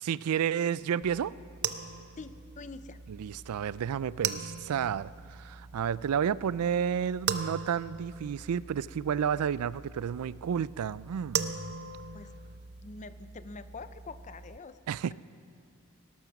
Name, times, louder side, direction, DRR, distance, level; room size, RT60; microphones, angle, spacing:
voice 1, 0.0-1.3 3.1-11.4 14.9-15.1, right 8 dB, 85° right, 19 dB, 0.4 m, -31 dB
sound 1, 1.0-14.6, right 7 dB, 50° right, 0.7 m, -40 dB
voice 2, 2.2-3.0 12.1-12.3 12.8-14.8, left 3 dB, 35° left, 13 dB, 0.5 m, -45 dB
18.5 x 12.0 x 6.0 m, 2.6 s
head